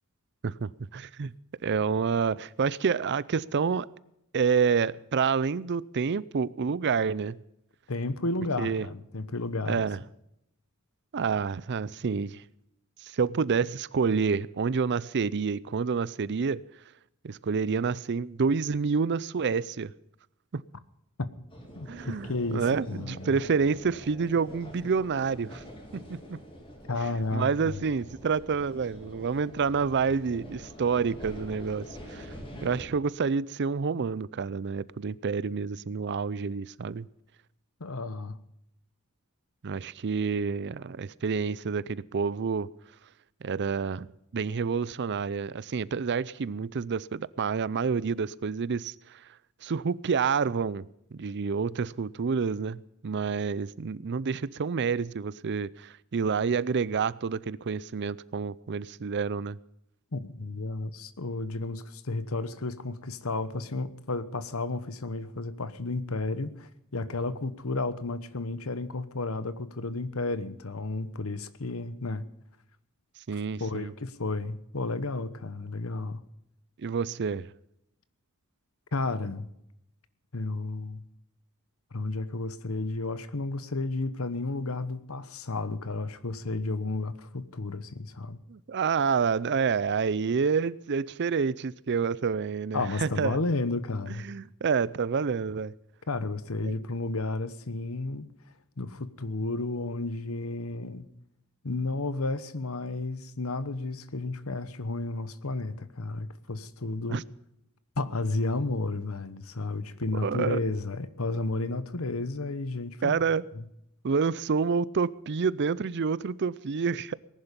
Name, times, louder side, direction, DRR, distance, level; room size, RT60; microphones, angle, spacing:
voice 1, 0.4-1.3 1.6-3.9 4.3-7.4 8.6-8.9 9.7-10.0 11.1-12.4 13.0-16.6 17.2-19.9 20.5-20.6 21.9-25.6 25.9-26.4 27.3-32.3 32.6-37.1 39.6-42.7 43.4-44.1 44.3-49.3 49.6-59.6 73.3-73.9 76.8-77.5 88.5-93.4 94.2-95.7 96.6-96.8 107.1-107.2 110.2-110.6 113.0-113.5 114.0-117.1, right 5 dB, 55° right, 0.5 m, -28 dB
voice 2, 7.9-9.8 21.2-21.3 21.7-23.3 26.9-27.8 37.8-38.4 60.1-72.3 73.6-76.2 78.9-79.5 80.3-81.1 81.9-88.4 92.7-94.2 96.1-98.3 98.8-101.1 101.6-107.2 108.0-113.2 113.5-113.6, left 2 dB, 70° left, 1.1 m, -32 dB
sound 1, 21.5-32.9, equal, 25° left, 3.1 m, -45 dB
19.0 x 11.0 x 5.3 m
head